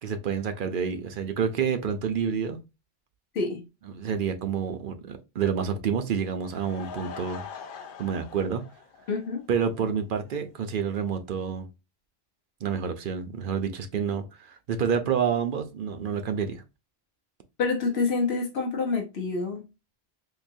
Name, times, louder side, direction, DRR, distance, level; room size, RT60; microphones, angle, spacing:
voice 1, 0.0-2.6 3.9-7.4 8.0-8.6 9.5-11.7 12.6-16.6, right 7 dB, 60° right, 0.7 m, -28 dB
voice 2, 3.3-3.7 9.1-9.5 17.6-19.7, left 4 dB, 75° left, 1.0 m, -27 dB
Laughter / Crowd, 6.2-9.7 10.0-10.1 10.6-10.7 10.9-11.0, left 6 dB, 60° left, 0.8 m, -43 dB
3.8 x 2.8 x 2.6 m
omnidirectional pair, 1.1 m